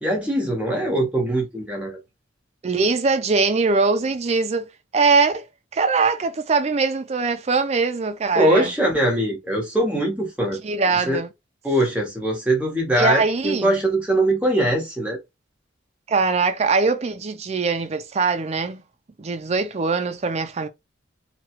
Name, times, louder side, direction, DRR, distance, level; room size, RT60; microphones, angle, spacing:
voice 1, 0.0-2.0 8.3-10.6 11.1-11.2 11.6-15.2, right 1 dB, 5° right, 1.0 m, -22 dB
voice 2, 2.6-5.5 5.7-8.7 10.6-11.3 13.0-13.7 16.1-18.8 19.2-20.7, right 4 dB, 35° right, 0.4 m, -22 dB
3.0 x 2.3 x 2.9 m
head